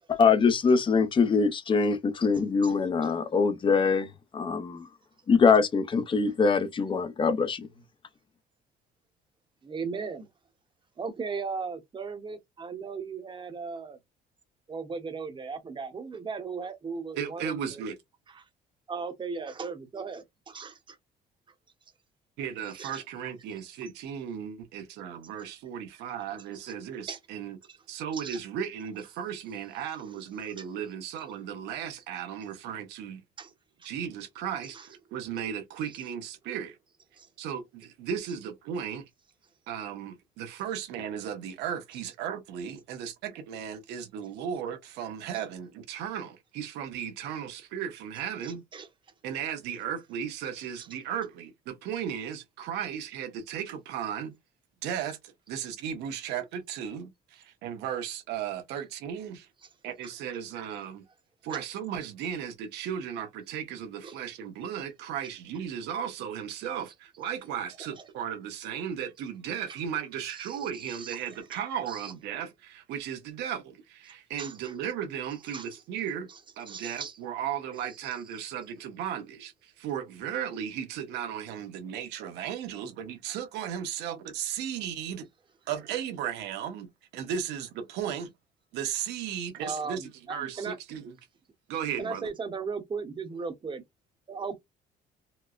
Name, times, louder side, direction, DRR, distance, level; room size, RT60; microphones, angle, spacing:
voice 1, 0.1-4.9 5.3-7.7, left 5 dB, 30° left, 0.6 m, -23 dB
voice 2, 9.6-10.3 11.0-14.0 14.7-17.8 18.3-18.4 18.9-21.0 22.8-23.0 23.8-23.9 27.1-27.2 27.7-27.8 28.1-28.4 30.6-30.7 31.2-31.3 33.4-33.5 33.8-33.9 34.6-34.9 37.2-37.3 48.4-48.9 50.8-50.9 60.0-60.1 61.5-61.6 64.0-64.2 68.0-68.1 70.3-71.2 71.9-72.1 74.4-74.7 75.5-75.8 76.3-76.4 76.7-77.2 89.6-90.8 92.0-93.8 94.3-94.6, right 5 dB, 30° right, 0.8 m, -37 dB
voice 3, 17.2-18.0 22.4-27.6 27.9-33.2 33.8-36.8 37.4-39.0 39.7-48.6 49.2-54.3 54.8-59.5 59.8-61.0 61.4-76.3 76.6-85.3 85.7-88.3 88.7-91.1 91.7-92.3, right 8 dB, 90° right, 1.1 m, -35 dB
4.3 x 2.0 x 2.4 m
cardioid pair, 110°, 17 cm